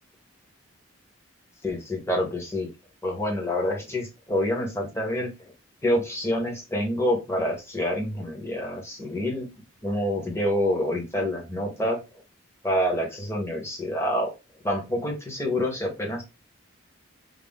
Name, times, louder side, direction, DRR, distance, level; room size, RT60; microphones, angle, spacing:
voice 1, 1.6-2.7 3.0-5.5 5.8-9.5 9.8-12.0 12.6-14.3 14.6-16.2, left 1 dB, 15° left, -1 dB, 0.7 m, -27 dB
2.4 x 2.0 x 3.5 m, 0.26 s
head